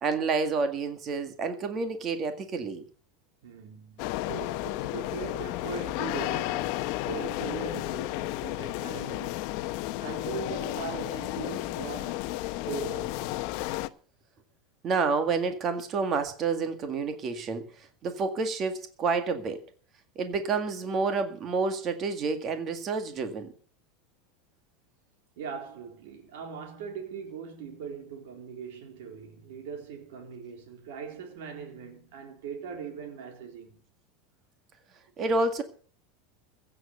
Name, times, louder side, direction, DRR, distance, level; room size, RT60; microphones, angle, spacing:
voice 1, 0.0-2.8 14.8-17.6 18.0-19.6 20.2-23.5 35.2-35.6, right 4 dB, 25° right, 1.9 m, -29 dB
voice 2, 3.4-9.5 10.0-13.3 25.4-33.8, right 6 dB, 65° right, 3.8 m, -40 dB
sound 1, 4.0-13.9, left 17 dB, 45° left, 0.9 m, -32 dB
15.5 x 7.8 x 8.0 m
supercardioid pair, 170°, 0 cm